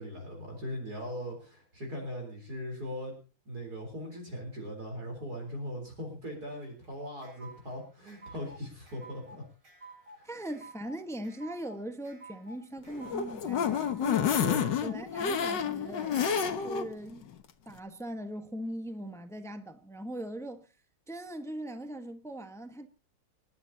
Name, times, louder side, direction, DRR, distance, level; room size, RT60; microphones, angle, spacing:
voice 1, 0.0-3.2 3.5-9.4 10.2-10.3 14.4-14.8, equal, 45° right, 4.5 m, -39 dB
sound 1, 6.6-16.6, right 2 dB, 90° right, 7.9 m, -52 dB
voice 2, 10.2-14.4 14.8-16.1 16.6-17.3 17.7-20.6 21.1-22.9, right 1 dB, ahead, 1.0 m, -40 dB
sound 2, 12.9-16.9 17.3-17.4 17.7-17.8, left 8 dB, 60° left, 1.8 m, -29 dB
30.0 x 11.0 x 2.9 m
omnidirectional pair, 2.3 m